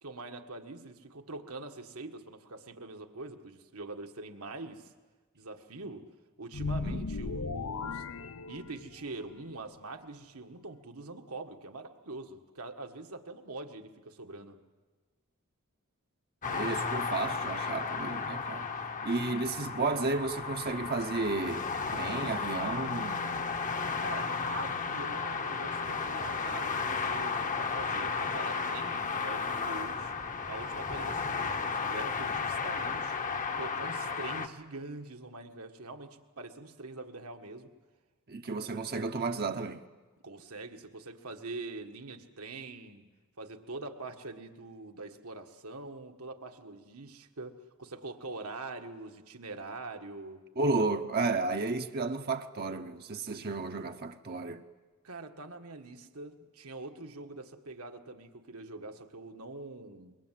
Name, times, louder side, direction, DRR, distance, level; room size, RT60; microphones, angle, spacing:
voice 1, 0.0-4.9 5.4-6.0 6.4-8.0 8.5-14.6 24.0-30.1 30.5-33.2 33.6-37.7 40.2-43.1 43.4-50.4 55.0-60.2, right 3 dB, 75° right, 1.7 m, -44 dB
sound 1, 6.5-9.1, left 4 dB, 70° left, 0.7 m, -36 dB
sound 2, 16.4-34.5, left 5 dB, 35° left, 1.0 m, -34 dB
voice 2, 16.5-18.7 19.0-23.3 38.3-39.8 50.6-54.6, right 3 dB, 45° right, 0.9 m, -32 dB
27.0 x 23.0 x 7.6 m
head